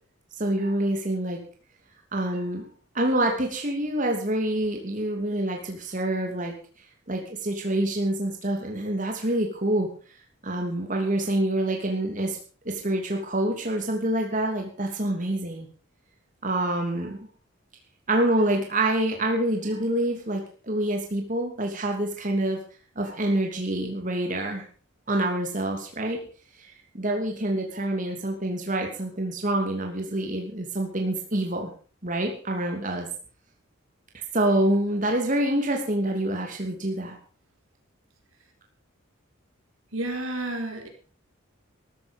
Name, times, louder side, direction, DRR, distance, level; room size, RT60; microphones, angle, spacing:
voice 1, 0.4-1.4 2.1-2.7 2.9-6.5 7.1-9.9 10.4-12.4 12.6-15.7 16.4-17.2 18.1-22.6 23.0-24.6 25.1-26.2 26.6-31.7 32.0-33.1 34.3-37.1, right 1 dB, 40° right, 1 dB, 2.8 m, -26 dB
voice 2, 39.9-40.9, right 2 dB, 80° right, 4 dB, 4.5 m, -30 dB
14.5 x 14.0 x 5.3 m, 0.40 s
head